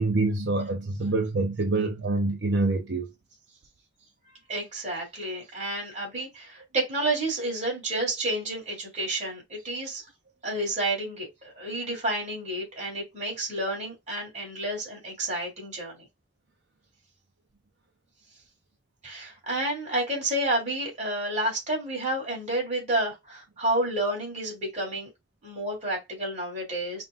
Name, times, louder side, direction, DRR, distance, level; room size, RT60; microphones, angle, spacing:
voice 1, 0.0-3.1, right 3 dB, 70° right, 0.7 m, -26 dB
voice 2, 4.5-10.0 10.4-16.0 19.0-25.1 25.4-27.0, right 1 dB, 40° right, 3.0 m, -30 dB
5.6 x 2.5 x 2.5 m
head